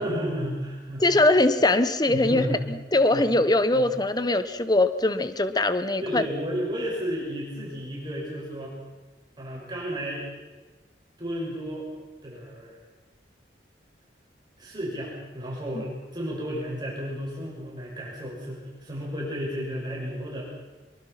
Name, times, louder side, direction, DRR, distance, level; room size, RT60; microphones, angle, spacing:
voice 1, 0.0-1.3 2.1-2.6 3.1-3.3 3.7-3.8 6.0-8.8 9.4-10.3 11.2-11.9 12.2-12.8 14.6-20.4, equal, 25° right, -4 dB, 6.9 m, -32 dB
voice 2, 1.0-6.2, left 2 dB, 25° left, 11 dB, 1.1 m, -22 dB
24.5 x 23.0 x 5.9 m, 1.2 s
head